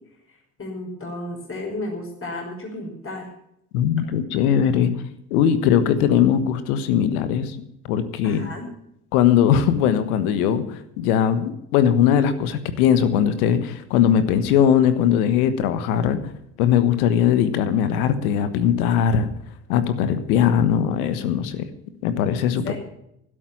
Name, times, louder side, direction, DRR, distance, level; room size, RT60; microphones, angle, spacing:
voice 1, 0.6-3.3 8.2-8.7 22.5-22.7, left 1 dB, 30° left, -1 dB, 5.7 m, -33 dB
voice 2, 3.7-4.9 5.3-7.5 7.9-8.5 9.1-10.6 11.0-16.2 16.6-19.3 19.7-21.7 22.0-22.7, left 9 dB, 80° left, 11 dB, 1.4 m, -20 dB
12.0 x 11.5 x 7.2 m, 0.76 s
hypercardioid pair, 55°, 44 cm